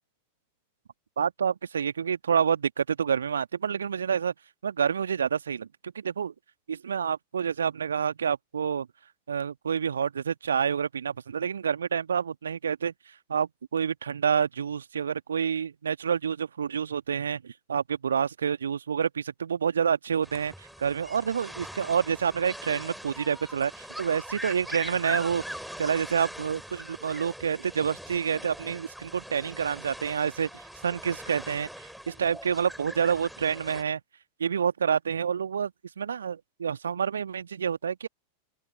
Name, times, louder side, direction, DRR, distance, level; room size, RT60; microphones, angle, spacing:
voice 1, 1.2-4.3 4.6-6.3 6.7-8.9 9.3-12.9 13.3-25.4 25.8-34.0 34.4-35.7 36.0-38.1, right 7 dB, 70° right, 1.5 m, -28 dB
sound 1, 20.2-33.8, equal, ahead, 4.3 m, -42 dB
open air
figure-of-eight pair, 90°, 0 cm